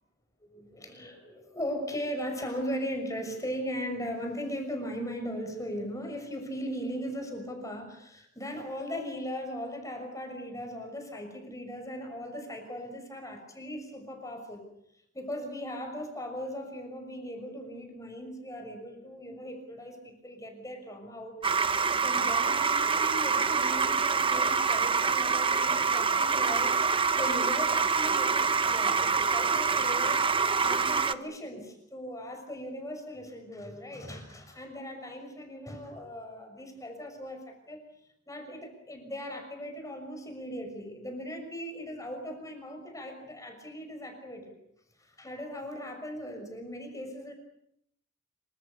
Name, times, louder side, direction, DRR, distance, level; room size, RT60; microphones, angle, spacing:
voice 1, 0.5-14.7 15.1-21.3 22.0-37.8 38.3-44.5 45.0-47.3, equal, 15° left, 3 dB, 6.3 m, -38 dB
sound 1, 21.4-31.1, right 5 dB, 25° right, 1.0 m, -26 dB
27.5 x 25.0 x 6.9 m, 0.74 s
head